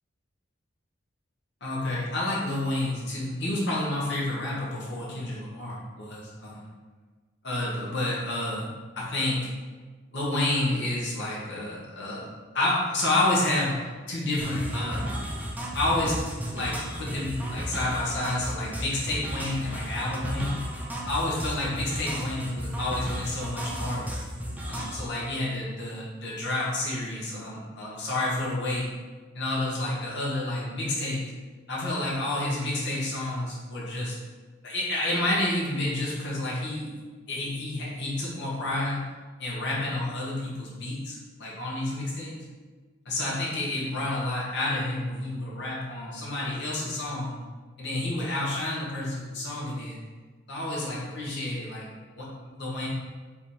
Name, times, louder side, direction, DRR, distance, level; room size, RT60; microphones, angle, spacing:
voice 1, 1.6-6.7 7.4-8.7 9.0-9.5 10.1-15.1 15.7-16.2 16.5-20.6 21.1-24.1 24.7-28.9 29.3-31.2 31.7-34.2 34.6-36.9 37.3-39.0 39.4-42.3 43.0-47.4 47.8-50.0 50.5-52.9, left 2 dB, 55° left, -6 dB, 1.1 m, -29 dB
sound 1, 14.4-25.1, equal, 10° right, 0.4 m, -34 dB
3.5 x 3.1 x 4.2 m, 1.4 s
head